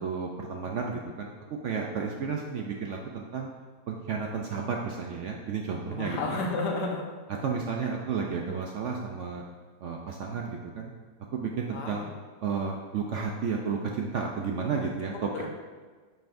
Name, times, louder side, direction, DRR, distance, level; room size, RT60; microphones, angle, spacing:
voice 1, 0.0-3.5 3.9-6.4 7.4-9.4 9.8-10.9 11.3-12.0 12.4-15.5, right 5 dB, 65° right, 1 dB, 0.7 m, -32 dB
voice 2, 5.9-7.0 7.8-8.1 11.7-12.1 15.3-15.5, left 3 dB, 85° left, 2 dB, 1.6 m, -32 dB
8.8 x 5.6 x 2.6 m, 1.4 s
omnidirectional pair, 1.8 m